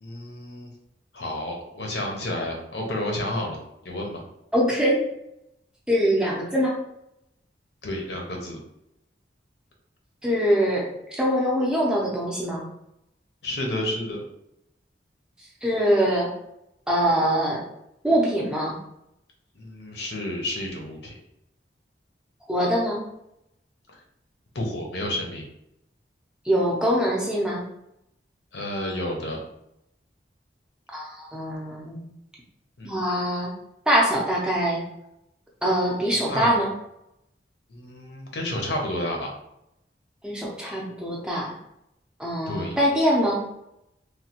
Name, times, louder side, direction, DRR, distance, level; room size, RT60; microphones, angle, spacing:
voice 1, 0.0-0.7 1.1-3.6 3.8-4.2 7.8-8.6 13.4-14.2 19.6-21.1 24.5-25.4 28.5-29.4 32.8-33.0 36.0-36.6 37.7-39.3 42.5-42.8, left 1 dB, 70° left, 0 dB, 0.7 m, -30 dB
voice 2, 4.5-5.0 5.9-6.8 10.2-10.8 11.1-12.6 15.6-16.3 16.9-17.6 18.0-18.7 22.5-23.0 26.5-27.6 30.9-32.0 32.8-33.5 33.9-34.8 35.6-36.7 40.2-41.5 42.2-43.4, equal, 5° right, -4 dB, 0.5 m, -23 dB
3.1 x 2.2 x 2.9 m, 0.82 s
head